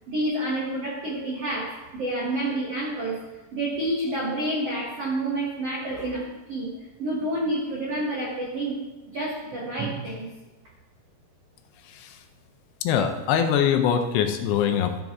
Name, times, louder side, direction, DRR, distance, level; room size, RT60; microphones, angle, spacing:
voice 1, 0.1-3.2 3.5-6.7 7.0-8.8 9.1-10.3, right 1 dB, 90° right, -3 dB, 1.3 m, -29 dB
voice 2, 12.8-15.0, left 8 dB, 80° left, 6 dB, 2.8 m, -23 dB
13.5 x 7.9 x 3.6 m, 1.1 s
omnidirectional pair, 5.1 m